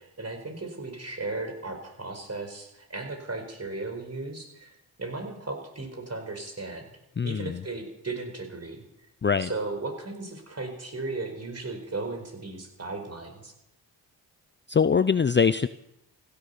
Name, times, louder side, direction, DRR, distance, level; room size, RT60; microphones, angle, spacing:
voice 1, 0.0-6.9 7.2-8.9 9.4-13.5, right 3 dB, 35° right, 4 dB, 4.7 m, -36 dB
voice 2, 7.2-7.6 9.2-9.5 14.7-15.7, left 6 dB, 25° left, 15 dB, 0.6 m, -23 dB
15.5 x 11.5 x 6.9 m, 0.83 s
supercardioid pair, 45°, 46 cm